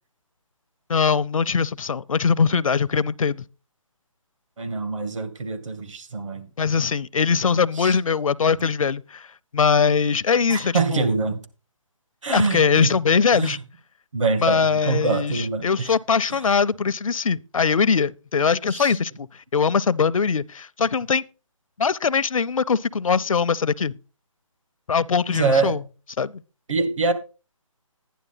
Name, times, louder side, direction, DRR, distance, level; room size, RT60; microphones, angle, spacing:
voice 1, 0.9-3.4 6.6-9.3 9.5-11.1 12.3-13.6 14.4-19.3 19.5-21.2 21.8-23.9 24.9-25.8 26.2-26.4, left 5 dB, 75° left, 0.6 m, -21 dB
voice 2, 4.6-6.5 7.7-8.0 10.5-11.4 12.2-13.0 13.3-13.6 14.1-15.9 16.3-16.4 18.7-18.9 25.3-25.8 26.7-27.1, right 4 dB, 65° right, 1.9 m, -25 dB
11.5 x 10.0 x 3.9 m
figure-of-eight pair, 155°, 18 cm